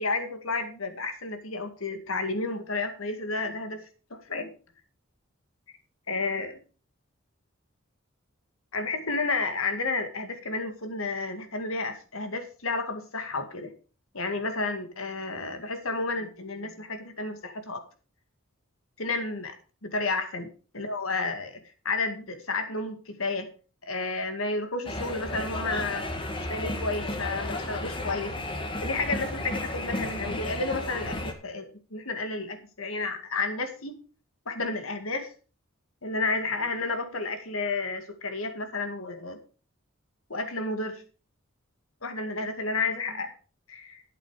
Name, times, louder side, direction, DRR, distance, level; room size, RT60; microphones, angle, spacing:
voice 1, 0.0-3.8 4.1-4.5 6.1-6.6 8.7-13.7 14.1-17.8 19.0-19.5 19.8-20.5 20.7-21.6 21.8-23.5 23.8-26.0 26.4-28.3 28.8-33.9 34.5-35.3 36.0-39.4 40.3-41.0 42.0-43.3 43.7-44.0, left 3 dB, 80° left, 7 dB, 2.2 m, -31 dB
sound 1, 24.9-31.3, left 1 dB, 25° left, 1.8 m, -33 dB
12.0 x 8.5 x 5.0 m, 0.36 s
head